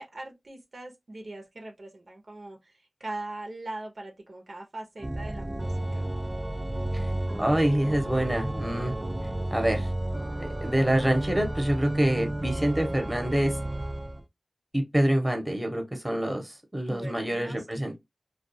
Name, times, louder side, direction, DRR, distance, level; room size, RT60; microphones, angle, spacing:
voice 1, 0.0-2.6 3.0-5.7 16.9-17.6, right 2 dB, 65° right, 0.7 m, -40 dB
Organ, 5.0-14.2, right 1 dB, 30° right, 0.4 m, -32 dB
voice 2, 7.4-8.9 9.5-9.9 10.4-13.6 14.7-18.0, right 1 dB, 10° right, 0.9 m, -26 dB
2.3 x 2.3 x 2.6 m
wide cardioid pair, 55°, 0 cm